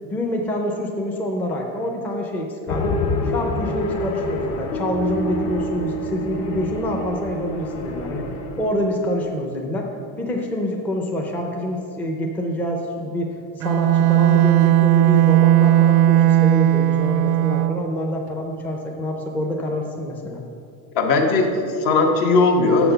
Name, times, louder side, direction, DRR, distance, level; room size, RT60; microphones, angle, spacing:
voice 1, 0.1-8.3 8.6-9.9 10.2-20.4, left 1 dB, 5° left, 1 dB, 0.4 m, -26 dB
sound 1, 2.7-8.7, left 3 dB, 45° left, 0.7 m, -28 dB
Piano, 4.7-11.5, right 8 dB, 85° left, 1.2 m, -33 dB
Bowed string instrument, 13.6-17.9, right 13 dB, 85° right, 0.5 m, -16 dB
voice 2, 20.9-22.9, left 3 dB, 65° left, 3 dB, 1.3 m, -18 dB
7.1 x 5.9 x 6.7 m, 2.4 s
cardioid pair, 170°, 34 cm